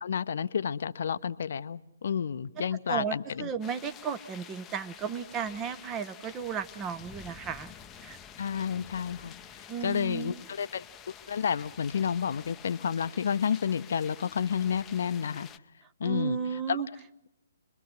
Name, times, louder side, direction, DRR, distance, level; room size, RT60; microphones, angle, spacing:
voice 1, 0.0-3.5 8.4-9.3 9.8-10.8 11.3-15.5 16.0-16.4 16.7-16.8, left 7 dB, 55° left, 13 dB, 0.8 m, -30 dB
voice 2, 2.9-7.7 8.0-8.2 9.7-10.4 16.0-16.9, right 7 dB, 20° right, 11 dB, 1.0 m, -34 dB
sound 1, 3.6-15.6, left 8 dB, 15° left, 0.8 m, -49 dB
26.5 x 22.5 x 6.0 m, 0.85 s
figure-of-eight pair, 130°, 0 cm